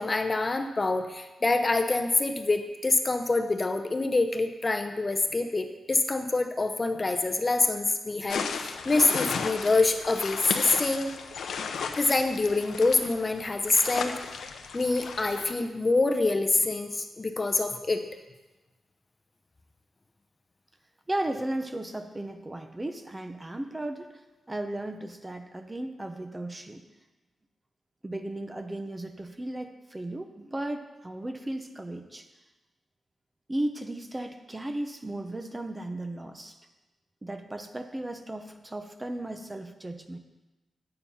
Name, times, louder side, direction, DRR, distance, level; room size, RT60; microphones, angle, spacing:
voice 1, 0.0-11.1 11.9-14.2 14.7-18.0, left 3 dB, 30° left, 6 dB, 0.7 m, -26 dB
sound 1, 8.3-15.5, left 6 dB, 90° left, 0.7 m, -35 dB
voice 2, 21.1-24.1 24.5-26.8 28.0-32.3 33.5-36.6 37.2-40.2, right 1 dB, 15° right, 7 dB, 0.7 m, -35 dB
8.5 x 6.9 x 5.6 m, 1.1 s
wide cardioid pair, 120°, 0 cm